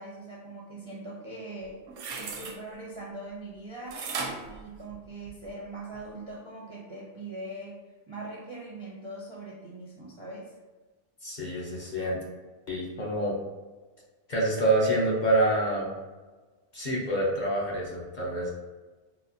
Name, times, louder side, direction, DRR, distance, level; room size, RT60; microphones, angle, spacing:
voice 1, 0.0-1.8 2.1-4.1 4.4-7.8 8.1-10.5, right 2 dB, 40° right, -5 dB, 0.4 m, -41 dB
sound 1, 1.6-2.6 3.9-5.5 5.9-6.0, right 4 dB, 75° right, 0.9 m, -36 dB
voice 2, 11.2-12.2 12.7-13.4 14.3-15.9 16.7-18.5, right 1 dB, 45° left, -4 dB, 0.7 m, -27 dB
4.0 x 2.2 x 2.7 m, 1.3 s
omnidirectional pair, 1.2 m